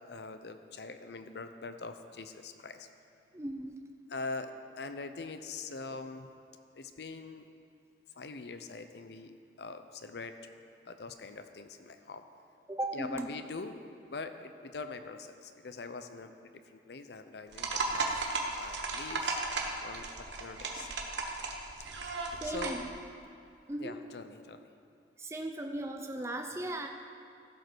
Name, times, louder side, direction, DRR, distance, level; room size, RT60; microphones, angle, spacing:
voice 1, 0.0-2.9 4.1-6.3 6.7-7.4 8.2-10.3 10.9-12.3 12.9-13.7 14.1-18.1 18.5-19.4 19.8-20.9 22.4-22.8 23.8-24.7, left 3 dB, 65° left, 8 dB, 0.6 m, -43 dB
voice 2, 3.3-3.8 12.7-13.3 22.4-22.9 23.2-23.3 23.7-24.0 25.2-26.9, right 1 dB, 15° right, 4 dB, 0.5 m, -37 dB
sound 1, 17.5-22.8, right 3 dB, 80° right, 1.2 m, -35 dB
15.0 x 5.3 x 6.1 m, 2.5 s
head